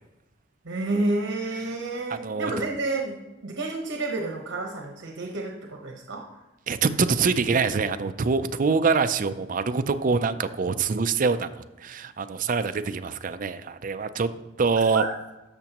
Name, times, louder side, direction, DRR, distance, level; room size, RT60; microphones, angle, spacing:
voice 1, 0.6-6.2 14.9-15.1, right 2 dB, 85° right, 2 dB, 1.0 m, -30 dB
voice 2, 2.1-2.5 6.7-14.3 14.6-15.0, right 5 dB, 45° right, 10 dB, 0.4 m, -25 dB
13.5 x 6.0 x 3.0 m, 0.99 s
head